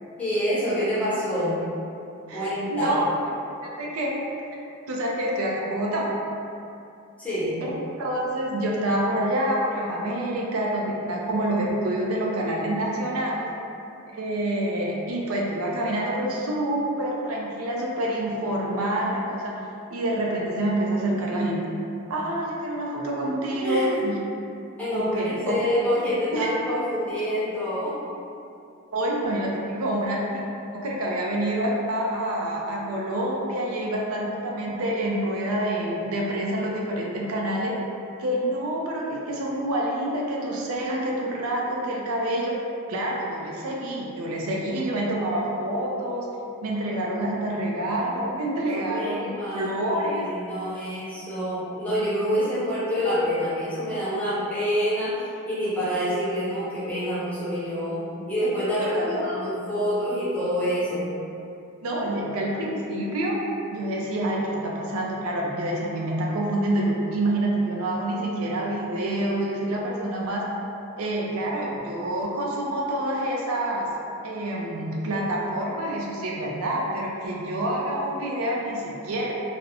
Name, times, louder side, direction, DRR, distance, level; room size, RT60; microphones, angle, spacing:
voice 1, 0.2-1.6 2.3-3.0 7.2-7.6 23.6-24.1 24.8-28.0 47.3-47.9 48.6-49.7 50.0-61.1, equal, 5° left, -11 dB, 0.6 m, -27 dB
voice 2, 2.3-3.1 3.6-4.3 4.9-6.1 7.7-13.5 14.1-19.5 19.9-21.7 22.1-24.2 24.9-25.6 26.3-26.5 28.9-30.5 30.7-37.7 38.2-42.5 42.9-46.3 46.6-50.3 58.8-59.2 61.8-63.4 63.7-70.4 71.0-73.9 74.2-79.3, right 1 dB, 75° right, -3 dB, 0.4 m, -27 dB
2.4 x 2.0 x 2.8 m, 2.6 s
head